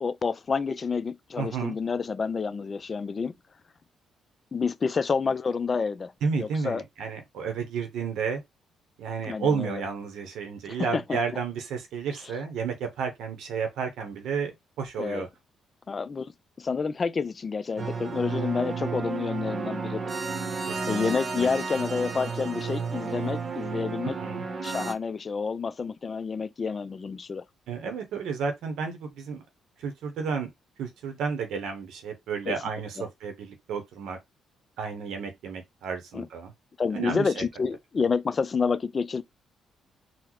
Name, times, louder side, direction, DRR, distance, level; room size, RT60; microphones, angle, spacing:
voice 1, 0.0-3.4 4.5-6.8 9.2-9.8 10.7-11.2 15.0-15.3 15.9-16.3 16.6-20.1 20.9-24.2 24.6-27.4 32.5-32.6 33.0-33.1 36.1-36.3 36.8-39.2, left 5 dB, 35° left, 0.3 m, -29 dB
voice 2, 1.4-1.7 6.2-8.4 9.0-15.3 20.7-21.1 21.4-21.5 24.2-24.4 27.7-29.4 29.8-30.5 30.8-34.2 34.8-36.5 36.9-37.4, right 6 dB, 80° right, 0.7 m, -32 dB
sound 1, 17.8-24.9, right 5 dB, 45° right, 0.8 m, -32 dB
3.8 x 2.0 x 3.0 m
cardioid pair, 90°, 0 cm